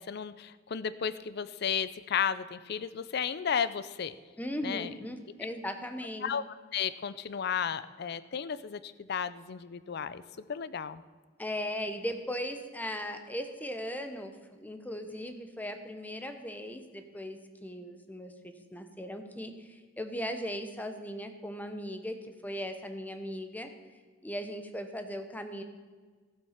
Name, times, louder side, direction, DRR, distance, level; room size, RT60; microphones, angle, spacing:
voice 1, 0.0-4.1 4.6-4.9 6.2-6.4 6.7-11.0, left 7 dB, 60° left, 15 dB, 0.5 m, -33 dB
voice 2, 4.4-6.3 11.4-23.7 24.2-25.6, equal, 10° left, 7 dB, 0.9 m, -38 dB
14.5 x 7.7 x 5.8 m, 1.5 s
head